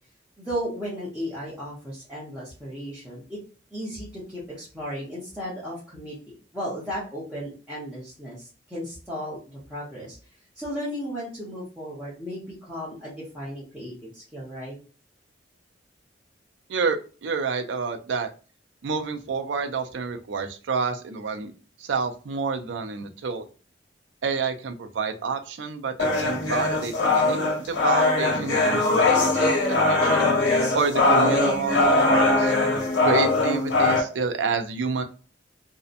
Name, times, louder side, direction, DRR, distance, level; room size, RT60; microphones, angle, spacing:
voice 1, 0.4-3.4 3.7-9.4 9.7-10.2 10.6-14.8, equal, 5° right, -9 dB, 0.7 m, -35 dB
voice 2, 16.7-18.3 18.8-21.5 21.8-23.4 24.2-30.3 30.7-32.5 33.0-35.0, right 5 dB, 75° right, 6 dB, 0.4 m, -28 dB
sound 1, 26.0-34.0, left 2 dB, 90° left, 1.1 m, -21 dB
2.7 x 2.1 x 2.4 m, 0.36 s
head